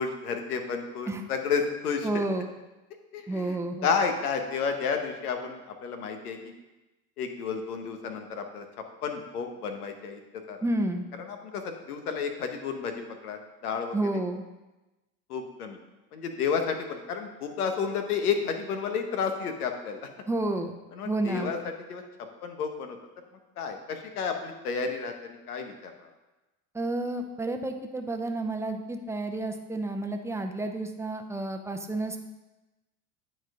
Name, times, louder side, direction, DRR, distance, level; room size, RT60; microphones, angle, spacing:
voice 1, 0.0-2.2 3.1-3.6 3.8-6.5 7.2-8.7 9.0-10.6 11.2-14.2 15.3-15.8 16.1-20.1 20.9-23.0 23.6-26.1, left 6 dB, 90° left, 6 dB, 1.2 m, -31 dB
voice 2, 2.0-2.5 3.3-3.9 10.6-11.0 13.9-14.4 20.3-20.7 21.0-21.5 26.7-32.2, right 2 dB, 5° right, 4 dB, 0.6 m, -30 dB
9.1 x 4.4 x 4.9 m, 1.1 s
supercardioid pair, 105°, 44 cm